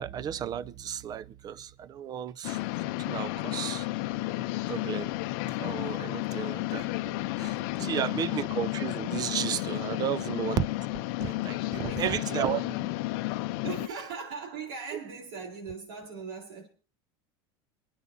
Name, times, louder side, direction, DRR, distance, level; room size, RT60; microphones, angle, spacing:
voice 1, 0.0-2.6 3.1-3.9 4.7-5.1 5.6-7.5 7.8-10.6 11.2-12.6, right 10 dB, 30° right, 0.5 m, -33 dB
sound 1, 2.4-13.9, left 18 dB, 70° left, 0.6 m, -32 dB
voice 2, 5.9-6.7 7.8-8.4 11.4-13.0 13.6-16.7, right 5 dB, 85° right, 4.1 m, -41 dB
27.5 x 9.5 x 2.7 m
supercardioid pair, 130°, 12 cm